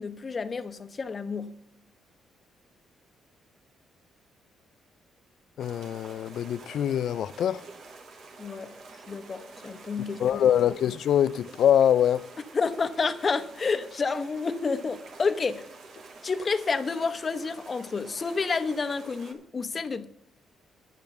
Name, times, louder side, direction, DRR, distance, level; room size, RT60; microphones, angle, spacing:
voice 1, 0.0-1.6 8.4-8.7 9.1-10.4 12.5-15.6 16.2-20.0, left 4 dB, 35° left, 1.0 m, -29 dB
voice 2, 5.6-7.6 10.2-12.3, left 10 dB, 70° left, 0.4 m, -24 dB
sound 1, 5.6-19.3, right 3 dB, 65° right, 2.5 m, -48 dB
9.6 x 7.1 x 6.9 m
cardioid pair, 90°, 0 cm